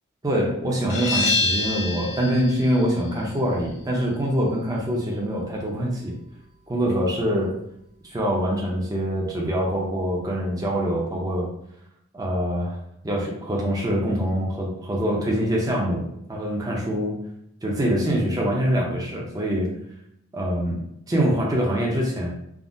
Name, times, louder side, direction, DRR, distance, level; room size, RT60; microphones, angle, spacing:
voice 1, 0.2-6.1 6.7-7.5 8.0-11.5 12.1-12.8 13.0-17.2 17.6-19.7 20.3-20.8 21.1-22.3, equal, 20° right, -3 dB, 0.5 m, -24 dB
sound 1, 0.9-6.3, left 3 dB, 65° left, 0.7 m, -29 dB
3.4 x 2.0 x 2.5 m, 0.77 s
head